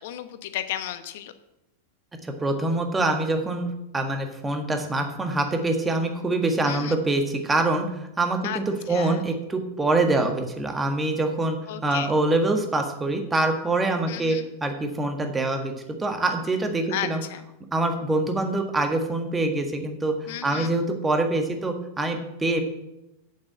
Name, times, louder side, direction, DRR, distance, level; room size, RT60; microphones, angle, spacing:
voice 1, 0.0-1.3 6.6-7.0 8.4-8.6 8.9-9.2 11.7-12.1 14.1-14.5 16.9-17.4 20.3-20.7, left 12 dB, 50° left, 11 dB, 1.0 m, -33 dB
voice 2, 2.2-11.6 11.8-17.2 17.7-20.1 20.4-22.6, right 2 dB, 10° right, 4 dB, 1.6 m, -25 dB
8.9 x 7.3 x 7.7 m, 0.90 s
figure-of-eight pair, 90°, 0 cm